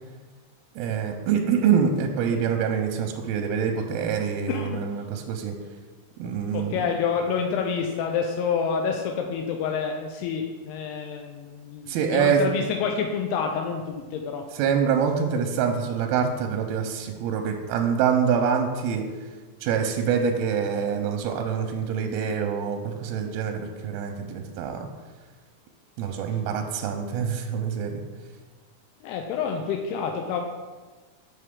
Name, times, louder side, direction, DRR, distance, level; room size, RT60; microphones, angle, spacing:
voice 1, 0.8-5.6 6.2-6.9 11.9-12.6 14.5-19.1 19.6-24.9 26.0-28.0, right 7 dB, 80° right, 3 dB, 2.3 m, -25 dB
voice 2, 4.5-4.8 6.5-14.4 29.0-30.4, left 6 dB, 85° left, 3 dB, 2.5 m, -28 dB
7.6 x 6.3 x 3.7 m, 1.4 s
omnidirectional pair, 4.8 m